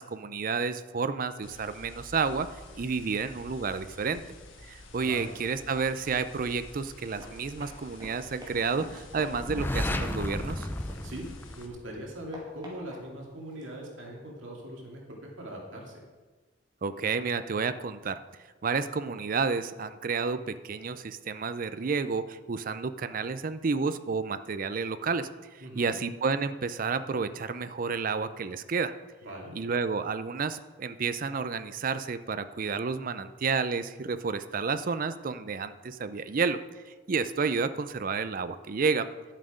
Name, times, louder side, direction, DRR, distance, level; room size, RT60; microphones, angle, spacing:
voice 1, 0.0-2.5 2.7-4.2 4.7-10.7 16.8-18.2 18.6-28.9 29.5-39.1, right 5 dB, 45° right, 12 dB, 0.5 m, -30 dB
sound 1, 1.4-11.7, left 2 dB, 90° left, 1.3 m, -49 dB
voice 2, 5.0-5.3 11.0-11.3 11.6-15.9 25.6-26.0 29.2-29.5, right 1 dB, 80° right, -1 dB, 2.6 m, -41 dB
Run, 7.0-11.5 11.9-13.8, equal, 20° right, 2.3 m, -48 dB
sound 2, 9.3-12.2, left 1 dB, 10° left, 0.4 m, -33 dB
11.0 x 7.5 x 5.1 m, 1.3 s
head